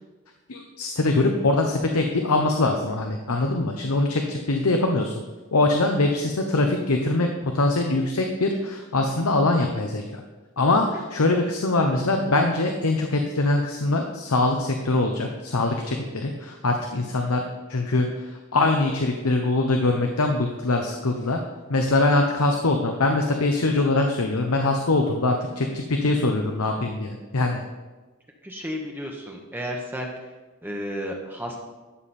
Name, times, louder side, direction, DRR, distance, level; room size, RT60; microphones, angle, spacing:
voice 1, 0.5-5.1 5.5-10.2 10.6-17.4 17.7-21.4 21.7-27.6, left 2 dB, 80° left, 3 dB, 0.9 m, -23 dB
voice 2, 28.4-30.3 30.6-31.6, equal, 10° right, 1 dB, 1.0 m, -32 dB
12.5 x 7.2 x 4.3 m, 1.2 s
head